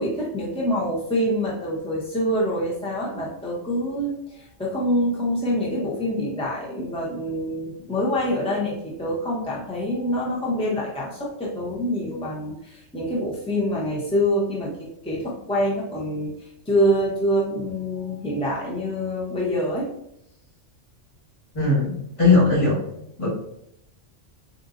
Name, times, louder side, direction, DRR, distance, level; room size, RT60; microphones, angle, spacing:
voice 1, 0.0-19.9, equal, 10° left, -5 dB, 0.4 m, -26 dB
voice 2, 21.5-22.8 23.2-23.3, left 3 dB, 25° left, -7 dB, 1.5 m, -19 dB
3.8 x 2.6 x 2.5 m, 0.76 s
omnidirectional pair, 1.3 m